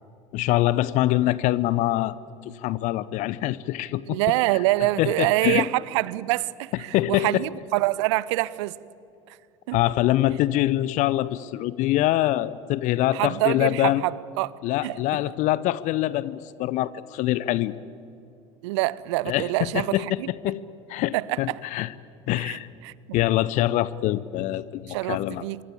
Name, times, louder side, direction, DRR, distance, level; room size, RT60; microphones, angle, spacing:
voice 1, 0.3-2.2 2.5-4.2 5.0-5.7 6.9-7.4 9.7-14.0 14.6-17.7 19.3-20.6 20.9-21.9 22.3-22.7 23.1-25.4, left 15 dB, 50° left, 0.8 m, -24 dB
voice 2, 4.1-8.7 9.7-9.8 13.1-14.5 14.8-15.0 18.6-20.3 21.1-21.4 22.4-22.6 22.8-23.2 24.9-25.6, right 18 dB, 60° right, 0.8 m, -25 dB
26.5 x 23.5 x 8.6 m
figure-of-eight pair, 70°, 17 cm